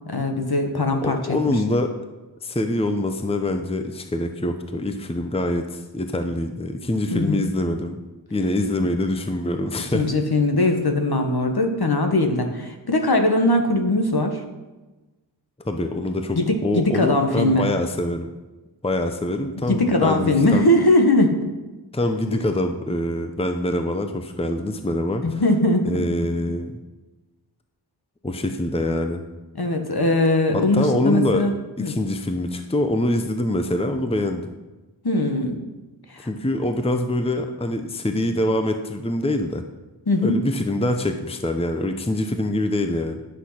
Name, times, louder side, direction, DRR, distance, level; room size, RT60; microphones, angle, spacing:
voice 1, 0.1-1.5 7.1-7.4 9.9-14.4 16.3-17.7 19.6-21.5 22.3-22.4 25.2-26.0 29.5-31.5 31.8-31.9 35.0-35.6 36.1-36.3 40.1-40.4, left 1 dB, 55° left, 4 dB, 1.5 m, -20 dB
voice 2, 1.0-1.9 2.4-8.0 8.3-10.1 15.7-18.3 18.8-20.7 21.9-25.4 25.8-26.8 28.2-29.2 30.5-31.5 31.8-34.5 36.2-39.6 40.2-43.2, left 1 dB, 15° left, 6 dB, 0.8 m, -24 dB
11.0 x 6.4 x 5.8 m, 1.1 s
wide cardioid pair, 60°, 45 cm